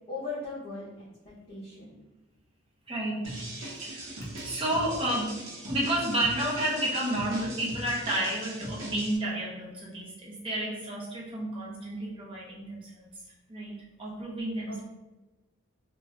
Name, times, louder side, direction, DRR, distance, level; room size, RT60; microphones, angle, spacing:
voice 1, 0.1-1.1 1.5-1.9 14.7-14.8, left 3 dB, 35° left, -10 dB, 0.8 m, -38 dB
voice 2, 2.9-5.3 5.6-13.1 13.5-13.7 14.0-14.8, right 1 dB, 25° right, -5 dB, 0.7 m, -31 dB
sound 1, 3.2-9.2, right 1 dB, 70° right, 0.8 m, -40 dB
2.5 x 2.4 x 3.2 m, 1.1 s
head